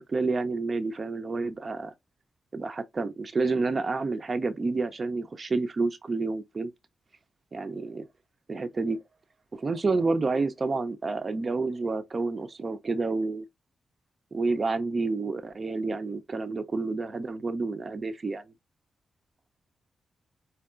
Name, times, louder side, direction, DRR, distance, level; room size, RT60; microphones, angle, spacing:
voice 1, 0.1-1.9 2.5-6.7 7.5-8.1 8.5-9.0 9.5-13.4 14.3-18.4, right 3 dB, 50° right, 0.6 m, -29 dB
4.5 x 2.8 x 2.5 m
supercardioid pair, 50°, 0 cm